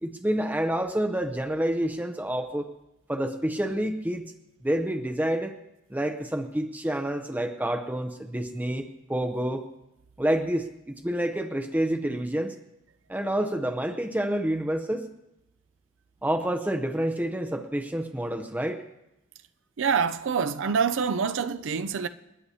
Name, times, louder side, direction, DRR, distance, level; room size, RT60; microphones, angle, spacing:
voice 1, 0.0-2.7 3.1-4.2 4.6-5.6 5.9-9.7 10.2-12.5 13.1-15.1 16.2-18.9, right 1 dB, 10° right, 0.6 m, -28 dB
voice 2, 19.8-22.1, right 6 dB, 65° right, 0.5 m, -26 dB
29.0 x 9.8 x 2.8 m
head